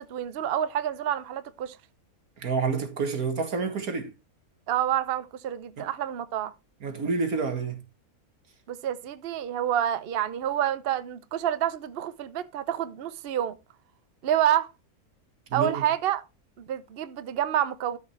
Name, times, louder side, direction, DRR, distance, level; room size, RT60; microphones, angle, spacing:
voice 1, 0.0-1.8 4.7-6.5 8.7-13.6 14.2-14.7 15.5-16.2 16.6-18.0, right 10 dB, 50° right, 0.8 m, -28 dB
voice 2, 2.4-4.1 5.8-5.9 6.8-7.8 15.5-15.8, right 4 dB, 75° right, 2.2 m, -28 dB
12.5 x 5.3 x 4.4 m
omnidirectional pair, 1.5 m